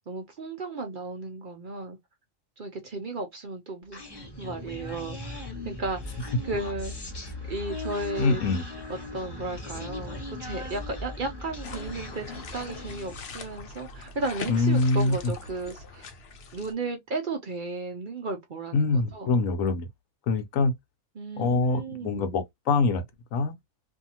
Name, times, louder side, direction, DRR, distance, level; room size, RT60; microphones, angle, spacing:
voice 1, 0.1-2.0 2.6-4.0 4.4-6.9 7.5-8.4 9.1-16.1 16.5-19.3 21.2-22.4, right 3 dB, 50° right, 0.7 m, -34 dB
Human voice, 3.9-13.4, left 2 dB, 20° left, 0.9 m, -38 dB
voice 2, 8.2-8.6 14.5-15.3 18.7-19.9 20.3-20.7 21.4-23.0 23.3-23.5, left 3 dB, 90° left, 1.1 m, -24 dB
sound 1, 11.6-16.7, left 4 dB, 60° left, 0.8 m, -42 dB
2.7 x 2.4 x 2.8 m
omnidirectional pair, 1.4 m